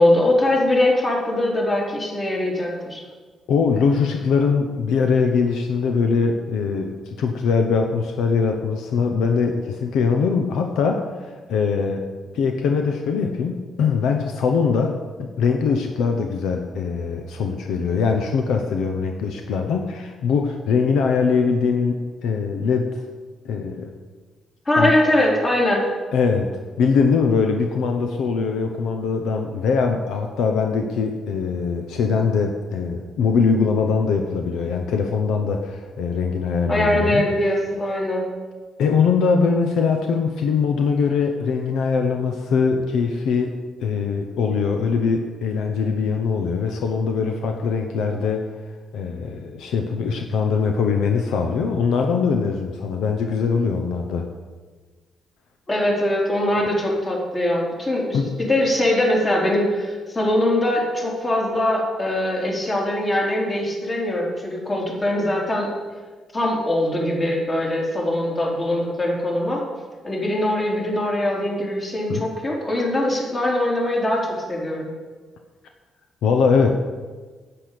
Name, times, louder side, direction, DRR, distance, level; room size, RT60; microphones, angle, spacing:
voice 1, 0.0-3.0 24.7-25.9 36.7-38.3 55.7-65.7 66.3-69.6 70.0-74.9, left 1 dB, 30° left, -2 dB, 4.0 m, -22 dB
voice 2, 3.5-12.1 12.3-14.9 15.2-23.0 23.4-23.9 24.8-24.9 26.1-37.2 38.8-43.5 43.8-48.4 48.9-54.3 58.1-58.3 72.1-72.2 76.2-76.7, left 5 dB, 80° left, 4 dB, 1.0 m, -22 dB
10.0 x 9.1 x 6.8 m, 1.4 s
cardioid pair, 90°, 0 cm